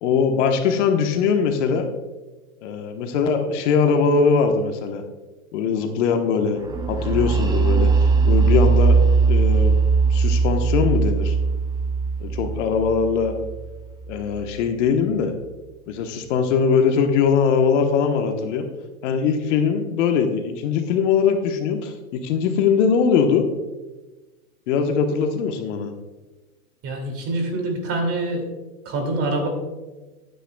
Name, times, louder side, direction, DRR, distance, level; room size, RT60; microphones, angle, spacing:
voice 1, 0.0-1.9 2.6-5.0 5.5-6.6 6.9-9.0 9.3-9.8 10.1-11.3 12.2-13.3 14.1-15.3 15.9-18.7 19.0-23.5 24.7-25.9, left 6 dB, 55° left, 5 dB, 1.2 m, -21 dB
sound 1, 6.7-14.4, right 4 dB, 10° right, 0.5 m, -19 dB
voice 2, 26.8-28.4 28.8-29.5, right 2 dB, 30° right, 3 dB, 2.5 m, -25 dB
15.0 x 9.2 x 2.3 m, 1.2 s
hypercardioid pair, 120°, 43 cm